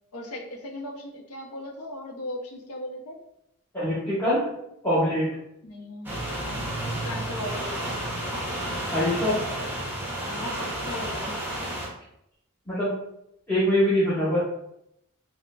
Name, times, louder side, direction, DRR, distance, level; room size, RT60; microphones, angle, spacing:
voice 1, 0.1-3.2 5.6-6.1 6.4-8.0 10.3-11.4, left 1 dB, 85° left, 1 dB, 0.6 m, -38 dB
voice 2, 3.7-4.5 4.8-5.3 8.9-9.4 12.7-12.9 13.5-14.4, equal, 10° left, -11 dB, 0.9 m, -23 dB
sound 1, 6.0-11.9, right 1 dB, 10° right, 0.6 m, -31 dB
4.8 x 2.1 x 2.3 m, 0.80 s
head